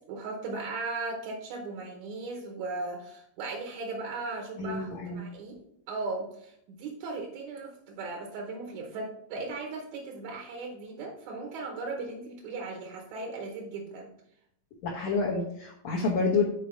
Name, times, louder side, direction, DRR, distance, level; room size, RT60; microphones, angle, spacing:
voice 1, 0.1-5.6 5.9-14.1, right 3 dB, 70° right, 1 dB, 2.0 m, -37 dB
voice 2, 4.6-5.2 14.8-16.4, left 4 dB, 65° left, -3 dB, 1.9 m, -28 dB
6.3 x 4.6 x 5.6 m, 0.74 s
omnidirectional pair, 4.1 m